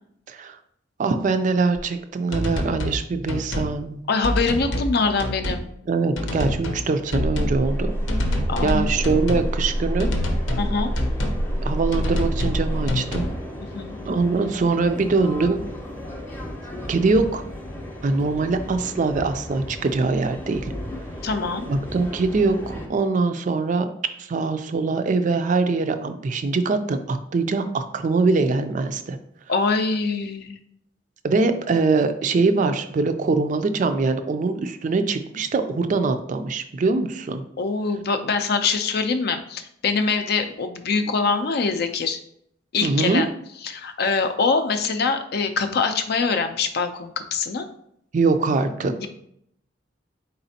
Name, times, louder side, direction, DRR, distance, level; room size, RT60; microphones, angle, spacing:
voice 1, 1.0-4.0 5.9-7.9 8.3-10.1 11.6-13.3 14.0-15.6 16.9-17.4 18.0-20.7 21.7-23.9 24.2-29.2 31.2-37.4 42.8-43.3 48.1-48.9, right 3 dB, 40° right, 9 dB, 0.3 m, -23 dB
sound 1, 1.8-1.9 2.3-3.0 3.3-3.7 4.2-4.9 5.2-5.6 6.2-6.8 7.1-7.6 8.1-9.5 10.0-10.7 11.0-11.4 11.9-12.6 12.9-13.3, left 1 dB, 85° left, 0.7 m, -27 dB
voice 2, 4.1-5.7 8.5-8.9 10.6-10.9 13.7-14.0 21.2-21.7 29.5-30.6 37.6-42.2 42.7-43.3 43.6-47.7 48.9-49.1, left 4 dB, 55° left, 8 dB, 0.4 m, -24 dB
sound 2, 7.1-12.9, equal, 90° right, 0.7 m, -26 dB
sound 3, 7.6-22.9, left 1 dB, 10° left, 0.7 m, -36 dB
4.2 x 4.0 x 2.7 m, 0.72 s
head